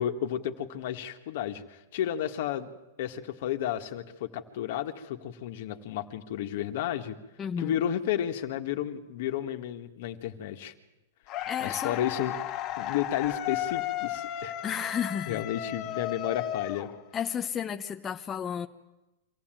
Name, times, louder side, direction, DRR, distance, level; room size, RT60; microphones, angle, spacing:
voice 1, 0.0-2.7 3.0-7.2 7.6-10.7 11.6-12.3 12.8-14.9 15.3-16.9, left 11 dB, 65° left, 7 dB, 1.7 m, -32 dB
voice 2, 7.4-7.8 11.5-12.0 14.6-15.4 17.1-18.7, left 8 dB, 20° left, 5 dB, 0.8 m, -32 dB
sound 1, 11.3-17.4, left 12 dB, 40° left, 1.4 m, -34 dB
24.5 x 15.0 x 9.1 m, 1.0 s
hypercardioid pair, 135°, 0 cm